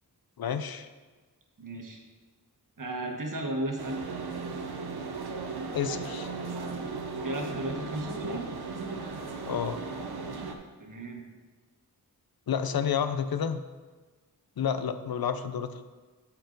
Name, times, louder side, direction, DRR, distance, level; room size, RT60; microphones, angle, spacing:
voice 1, 0.4-0.9 5.7-6.3 9.5-9.8 12.5-13.6 14.6-15.8, left 7 dB, 70° left, 11 dB, 0.5 m, -30 dB
voice 2, 1.6-2.0 2.8-4.0 7.2-8.5 10.8-11.2, right 1 dB, 55° right, 1 dB, 1.4 m, -34 dB
sound 1, 3.8-10.5, right 4 dB, 90° right, 0.8 m, -36 dB
12.5 x 4.5 x 3.9 m, 1.3 s
wide cardioid pair, 85°, 37 cm